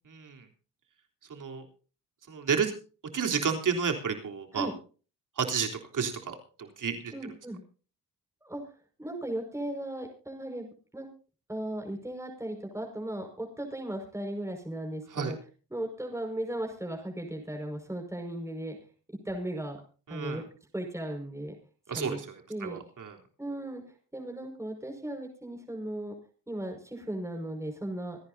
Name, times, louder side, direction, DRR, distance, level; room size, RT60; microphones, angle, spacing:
voice 1, 0.1-0.5 1.3-1.7 2.3-2.7 3.1-4.7 5.4-5.7 5.9-7.1 15.1-15.3 20.1-20.4 21.9-23.2, right 6 dB, 55° right, 3 dB, 3.6 m, -31 dB
voice 2, 7.1-7.6 8.4-8.6 9.0-11.1 11.5-15.4 15.7-18.8 19.3-19.8 20.1-20.4 20.7-21.5 22.0-22.2 22.5-22.8 23.4-23.8 24.1-26.1 26.5-28.2, right 1 dB, 5° right, 2 dB, 5.4 m, -36 dB
26.5 x 10.5 x 2.7 m, 0.37 s
cardioid pair, 75°, 38 cm